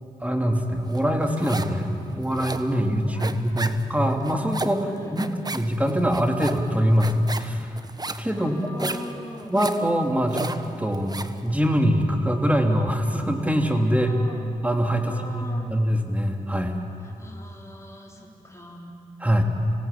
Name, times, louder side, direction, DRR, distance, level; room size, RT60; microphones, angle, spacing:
voice 1, 0.2-1.9 2.2-5.2 5.5-7.7 8.2-8.9 9.5-10.5 10.8-11.2 11.4-14.1 14.6-16.8 19.2-19.4, equal, 10° right, 2 dB, 3.3 m, -23 dB
sound 1, 0.9-1.8 2.1-11.4, right 2 dB, 25° right, 1.3 m, -34 dB
voice 2, 3.0-3.9 4.8-5.4 8.3-9.6 13.9-14.5 15.0-15.8 17.0-18.9, left 1 dB, 20° left, -2 dB, 3.9 m, -41 dB
26.0 x 18.0 x 8.7 m, 2.6 s
supercardioid pair, 40°, 15 cm